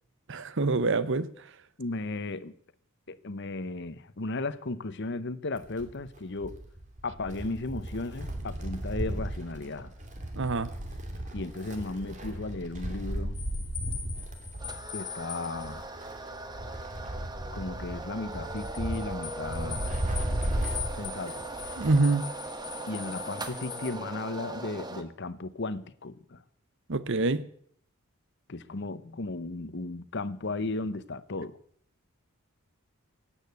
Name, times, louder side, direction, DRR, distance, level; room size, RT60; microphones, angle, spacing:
voice 1, 0.3-1.3 10.3-10.7 21.8-22.3 26.9-27.4, right 3 dB, 60° right, 0.8 m, -25 dB
voice 2, 1.8-2.5 3.1-6.6 7.0-9.9 11.3-13.4 14.9-15.9 17.5-20.0 20.9-21.4 22.9-26.4 28.5-31.6, left 2 dB, 55° left, 0.9 m, -35 dB
Wind, 5.6-22.2 22.5-22.6 23.6-23.7, right 1 dB, 35° right, 2.8 m, -36 dB
sound 1, 13.3-23.9, left 8 dB, 25° left, 2.5 m, -43 dB
sound 2, 14.6-25.0, right 2 dB, 20° right, 1.2 m, -40 dB
17.0 x 8.9 x 8.3 m
head